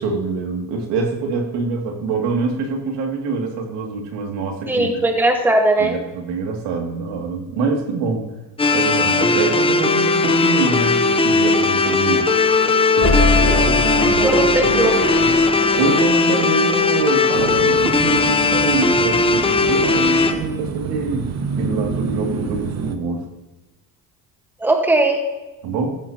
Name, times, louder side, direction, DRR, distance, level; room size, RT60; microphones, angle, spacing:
voice 1, 0.0-5.1 5.8-8.3 8.7-12.3 13.0-15.4 15.8-21.3 21.6-23.2 25.6-26.0, right 4 dB, 75° right, 2 dB, 2.5 m, -25 dB
voice 2, 4.7-6.0 14.2-14.9 24.6-25.2, right 2 dB, 5° right, 3 dB, 1.4 m, -18 dB
sound 1, 8.6-20.3, left 3 dB, 15° left, 0.7 m, -18 dB
sound 2, 13.0-17.3, left 2 dB, 30° left, 3.4 m, -23 dB
sound 3, 17.3-23.0, right 5 dB, 40° right, 1.1 m, -28 dB
15.0 x 14.5 x 2.9 m, 1.1 s
cardioid pair, 120°, 42 cm